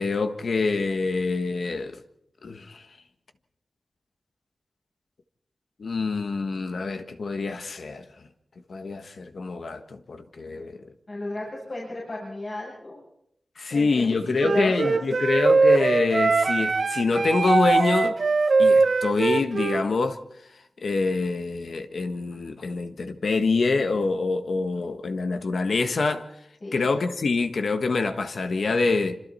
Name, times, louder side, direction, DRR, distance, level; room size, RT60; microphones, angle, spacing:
voice 1, 0.0-2.0 2.4-2.9 5.8-8.1 8.7-10.8 13.6-18.2 18.6-20.2 20.8-26.3 26.7-29.2, left 3 dB, 80° left, 1.5 m, -25 dB
voice 2, 11.1-13.0 13.7-15.0 26.6-26.9, left 1 dB, 55° left, 7.9 m, -34 dB
Wind instrument woodwind instrument, 14.4-19.9, right 4 dB, 70° right, 1.0 m, -21 dB
26.5 x 26.0 x 4.3 m
wide cardioid pair, 80°, 0 cm